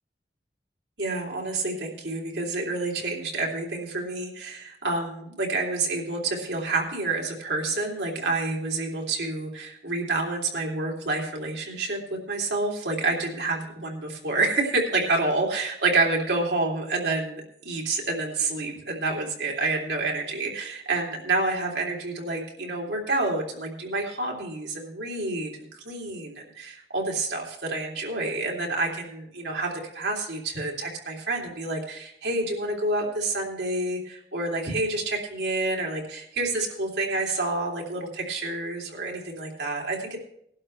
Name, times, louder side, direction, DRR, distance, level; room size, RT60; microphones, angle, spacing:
voice 1, 1.0-40.2, right 2 dB, 80° right, -1 dB, 3.2 m, -28 dB
20.0 x 11.5 x 3.3 m, 0.73 s
head